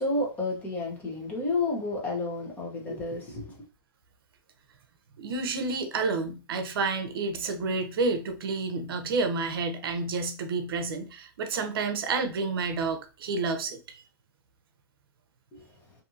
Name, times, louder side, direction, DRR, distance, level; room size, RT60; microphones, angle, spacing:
voice 1, 0.0-3.6 15.5-15.6, left 2 dB, 15° left, 0.7 m, -31 dB
voice 2, 5.2-14.0, right 3 dB, 70° right, 0.7 m, -30 dB
2.7 x 2.6 x 2.5 m
hypercardioid pair, 155°, 12 cm